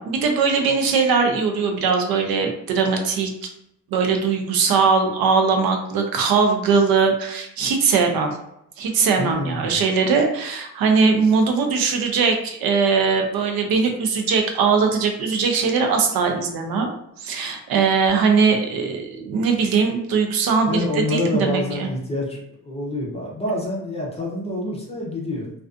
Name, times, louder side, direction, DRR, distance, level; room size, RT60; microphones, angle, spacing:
voice 1, 0.0-3.3 3.9-8.3 8.8-16.9 17.2-21.9, right 5 dB, 85° right, 4 dB, 0.6 m, -20 dB
voice 2, 9.2-9.8 20.7-25.5, left 1 dB, 20° left, -3 dB, 0.6 m, -27 dB
2.4 x 2.3 x 2.4 m, 0.78 s
cardioid pair, 160°, 35 cm